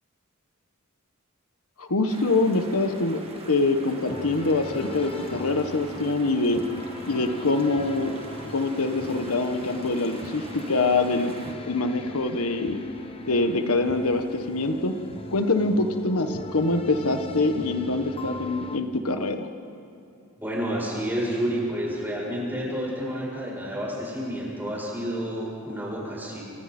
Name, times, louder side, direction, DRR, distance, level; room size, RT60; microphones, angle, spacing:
voice 1, 1.8-3.2 3.5-6.6 7.1-8.1 8.5-11.3 11.7-12.8 13.3-14.9 15.3-19.5, left 2 dB, 85° left, 7 dB, 1.3 m, -24 dB
sound 1, 2.1-11.5, right 2 dB, 30° right, 2.3 m, -43 dB
sound 2, 4.1-18.8, left 2 dB, 25° left, 1.2 m, -39 dB
voice 2, 20.4-26.4, equal, 10° right, -5 dB, 7.8 m, -30 dB
28.5 x 27.0 x 4.4 m, 2.6 s
head